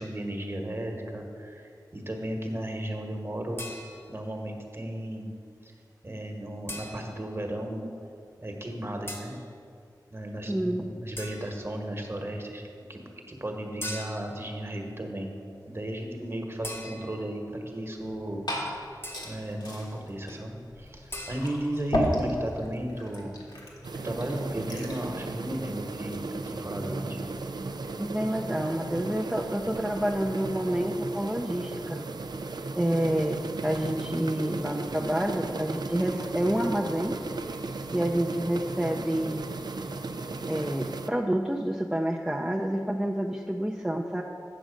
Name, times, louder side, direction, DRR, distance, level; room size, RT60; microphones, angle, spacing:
voice 1, 0.0-3.6 4.1-5.3 5.6-5.7 6.0-7.8 8.4-9.3 10.1-13.0 13.3-15.3 15.6-18.4 18.8-18.9 19.2-23.3 24.0-27.2, right 1 dB, 35° right, 2 dB, 1.3 m, -35 dB
sound 1, 3.6-4.3 6.7-7.3 9.1-9.5 11.2-11.7 13.8-14.5 16.6-17.4 19.0-19.5 21.1-21.4, left 1 dB, 35° left, 1.1 m, -40 dB
voice 2, 10.5-10.8 28.0-32.0 32.8-37.2 37.9-39.5 40.5-44.2, right 1 dB, 10° right, 0 dB, 0.5 m, -28 dB
Glass / Fill (with liquid), 18.0-25.1, equal, 70° left, 1.5 m, -34 dB
sound 2, 23.8-41.1, right 3 dB, 70° right, 0.5 m, -36 dB
8.8 x 6.1 x 5.2 m, 2.3 s
wide cardioid pair, 50°, 7 cm